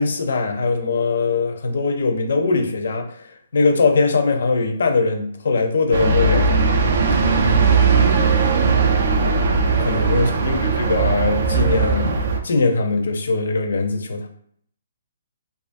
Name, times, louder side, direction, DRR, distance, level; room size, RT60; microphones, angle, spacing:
voice 1, 0.0-6.7 9.8-14.3, left 3 dB, 70° left, 5 dB, 0.5 m, -21 dB
sound 1, 5.9-12.4, right 4 dB, 60° right, 0.4 m, -18 dB
voice 2, 7.1-8.1, left 4 dB, 15° left, -3 dB, 0.4 m, -40 dB
2.4 x 2.3 x 2.5 m, 0.64 s
hypercardioid pair, 165°, 0 cm